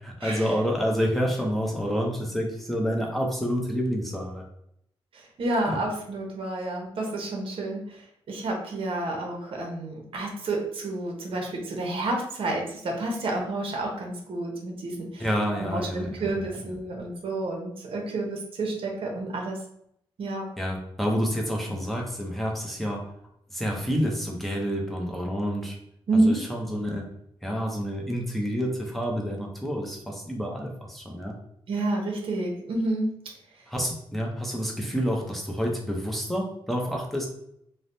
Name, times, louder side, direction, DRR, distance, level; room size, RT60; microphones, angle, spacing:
voice 1, 0.0-4.4 5.7-5.8 15.2-16.1 20.6-23.1 23.5-25.8 26.1-27.1 27.4-31.4 33.7-37.3, equal, ahead, 0 dB, 0.5 m, -28 dB
voice 2, 5.1-15.2 15.5-19.6 20.2-20.5 26.1-26.4 31.7-33.2, right 2 dB, 60° right, 1 dB, 0.7 m, -29 dB
3.2 x 2.0 x 2.6 m, 0.73 s
wide cardioid pair, 160°, 10 cm